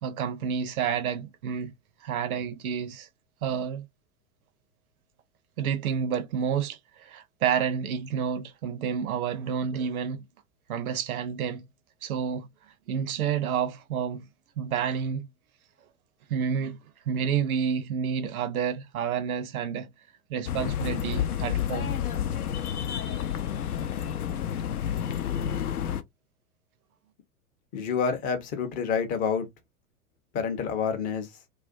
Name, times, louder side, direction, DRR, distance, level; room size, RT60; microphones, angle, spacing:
voice 1, 0.0-1.7 2.0-3.1 3.4-3.9 5.6-10.2 10.7-11.7 12.0-12.5 12.9-14.2 14.6-15.3 16.3-16.8 17.1-19.9 20.3-22.0, right 7 dB, 70° right, 0.6 m, -29 dB
sound 1, 20.5-26.0, left 9 dB, 80° left, 0.5 m, -30 dB
voice 2, 27.7-29.5 30.3-31.3, left 6 dB, 20° left, 0.4 m, -28 dB
2.4 x 2.2 x 2.4 m
figure-of-eight pair, 95°, 44 cm